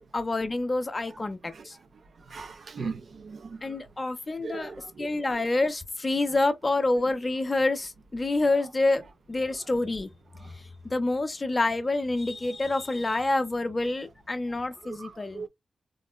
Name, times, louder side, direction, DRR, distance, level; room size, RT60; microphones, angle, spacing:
voice 1, 0.1-1.4 1.6-1.8 3.6-4.7 5.0-10.1 10.8-15.5, left 2 dB, 25° left, 0.4 m, -27 dB
voice 2, 2.3-3.6 4.4-5.1 14.9-15.1 15.3-15.5, right 4 dB, 55° right, 0.4 m, -37 dB
3.7 x 2.1 x 2.2 m
wide cardioid pair, 120°, 0 cm